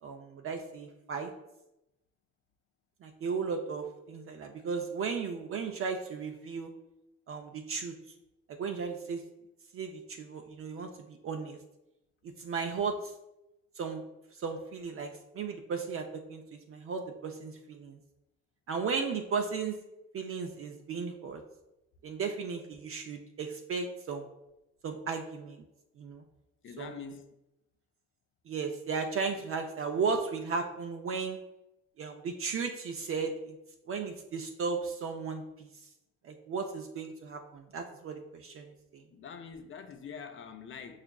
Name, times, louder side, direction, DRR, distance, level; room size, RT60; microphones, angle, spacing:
voice 1, 0.0-1.3 3.0-6.7 7.3-7.9 8.5-9.2 9.7-11.6 12.4-13.1 13.8-14.0 14.3-18.0 18.7-19.8 20.1-21.4 22.0-24.3 24.8-25.6 26.0-26.2 26.8-27.0 28.5-31.4 32.0-33.6 33.9-35.7 36.2-39.0, right 5 dB, 45° right, 0.4 m, -35 dB
voice 2, 26.6-27.3 39.1-41.0, left 6 dB, 40° left, 0.4 m, -44 dB
5.6 x 2.4 x 2.2 m
cardioid pair, 90°, 30 cm